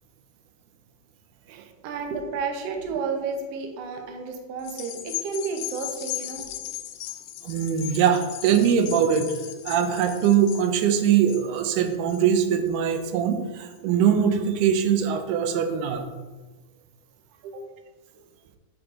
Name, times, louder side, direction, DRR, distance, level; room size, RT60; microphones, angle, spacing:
voice 1, 1.8-6.5 17.4-17.6, right 5 dB, 70° right, 3 dB, 1.5 m, -31 dB
sound 1, 4.6-13.3 13.8-13.9, left 13 dB, 85° left, 1.5 m, -37 dB
voice 2, 7.4-9.3 9.7-16.1, right 8 dB, 90° right, 7 dB, 2.2 m, -22 dB
7.6 x 3.8 x 3.6 m, 1.2 s
omnidirectional pair, 3.6 m